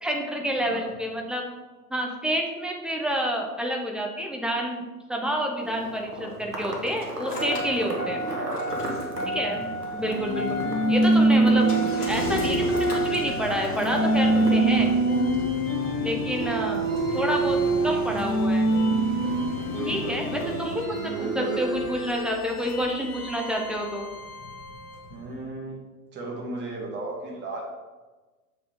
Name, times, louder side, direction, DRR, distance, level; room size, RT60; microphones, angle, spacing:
voice 1, 0.0-1.5 1.9-8.2 9.3-9.7 9.9-10.6 10.9-11.7 12.1-15.0 16.0-16.9 17.1-18.8 19.8-24.1, equal, ahead, 1 dB, 0.6 m, -29 dB
voice 2, 0.6-0.9 7.7-8.2 8.5-8.6 9.1-9.6 19.7-20.5 20.8-21.6 25.1-25.8 26.1-27.6, right 2 dB, 25° right, -3 dB, 1.8 m, -35 dB
sound 1, 5.6-14.9, right 1 dB, 90° right, 1.5 m, -36 dB
Engine starting, 5.7-20.8, equal, 75° left, 1.9 m, -34 dB
sound 2, 10.0-25.1, right 2 dB, 30° left, 1.9 m, -25 dB
7.2 x 5.3 x 3.7 m, 1.2 s
figure-of-eight pair, 95°, 46 cm